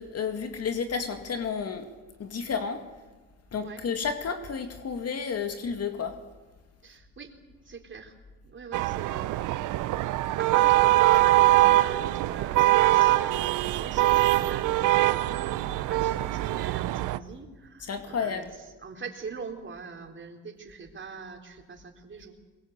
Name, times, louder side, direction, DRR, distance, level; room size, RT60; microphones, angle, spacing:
voice 1, 0.0-1.9 2.2-2.8 3.5-6.2 17.8-18.5, left 6 dB, 55° left, 6 dB, 2.1 m, -31 dB
voice 2, 6.8-7.3 7.6-8.1 8.4-9.7 10.0-22.4, right 4 dB, 40° right, 2 dB, 4.1 m, -42 dB
sound 1, 8.7-17.2, right 17 dB, 90° right, 0.7 m, -23 dB
22.5 x 22.5 x 8.2 m, 1.2 s
cardioid pair, 90°, 30 cm